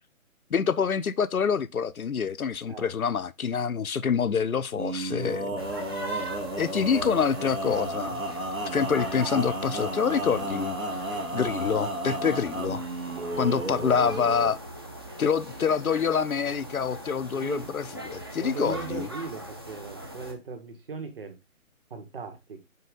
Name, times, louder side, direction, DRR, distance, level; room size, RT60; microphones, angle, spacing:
voice 1, 0.5-5.7 6.1-6.3 6.6-8.2 8.7-10.8 11.3-12.8 13.4-14.6 15.2-19.1, left 6 dB, 80° left, 0.6 m, -26 dB
Male singing, 4.7-14.5, right 1 dB, 75° right, 1.7 m, -33 dB
sound 1, 5.6-20.3, right 1 dB, 20° right, 0.5 m, -41 dB
voice 2, 13.1-13.9 17.3-17.7 18.4-21.3 21.9-22.6, right 5 dB, 40° right, 1.5 m, -38 dB
5.6 x 4.6 x 3.8 m
figure-of-eight pair, 140°, 42 cm